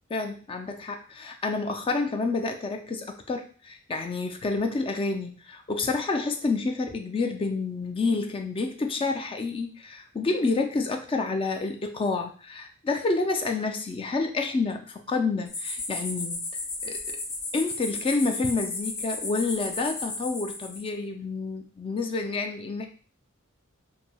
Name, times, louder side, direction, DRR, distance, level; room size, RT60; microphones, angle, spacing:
voice 1, 0.1-16.4 16.8-17.2 17.5-22.9, left 3 dB, 25° left, 5 dB, 0.3 m, -29 dB
sound 1, 15.5-20.8, left 3 dB, 50° left, 1.0 m, -34 dB
3.1 x 2.7 x 2.2 m, 0.40 s
head